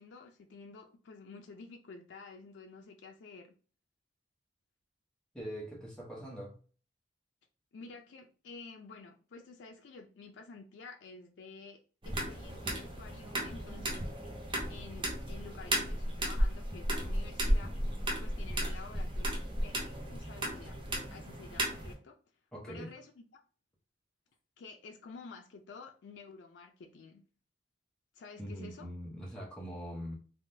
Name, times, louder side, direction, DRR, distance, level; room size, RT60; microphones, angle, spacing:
voice 1, 0.0-3.5 7.7-14.1 14.7-19.8 20.1-20.8 21.1-22.2 22.7-23.4 24.6-27.2 28.1-28.9, left 4 dB, 75° left, 0.4 m, -51 dB
voice 2, 5.3-6.6 22.5-22.9 28.4-30.1, equal, 5° left, 0.8 m, -42 dB
sound 1, 12.0-21.9, equal, 25° right, 0.6 m, -34 dB
3.4 x 2.1 x 2.6 m
head